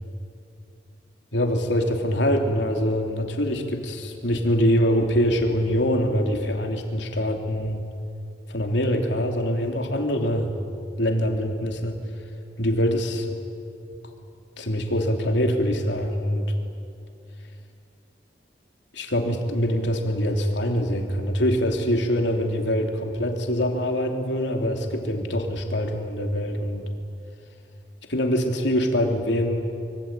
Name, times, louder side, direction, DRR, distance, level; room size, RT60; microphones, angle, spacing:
voice 1, 1.3-7.8 8.5-10.5 11.0-12.0 12.6-13.3 14.6-16.4 18.9-26.8 28.1-29.7, equal, 85° left, 3 dB, 3.2 m, -24 dB
25.0 x 24.5 x 9.1 m, 2.6 s
head